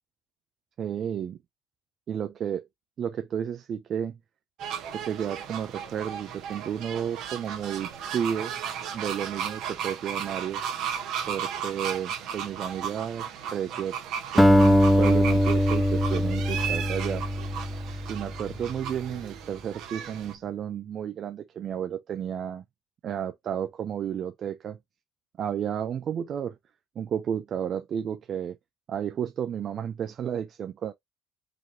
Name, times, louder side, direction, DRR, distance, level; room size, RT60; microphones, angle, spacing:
voice 1, 0.8-1.4 2.1-2.6 3.0-4.2 4.9-8.5 8.9-10.6 11.3-14.0 14.3-17.2 18.1-22.6 23.0-24.8 25.4-26.6 27.0-28.6 28.9-30.9, right 9 dB, 50° right, 0.6 m, -32 dB
sound 1, 4.6-20.3, right 8 dB, 65° right, 1.3 m, -35 dB
Acoustic guitar, 14.4-18.8, equal, ahead, 0.8 m, -22 dB
5.0 x 3.0 x 2.9 m
hypercardioid pair, 75°, 0 cm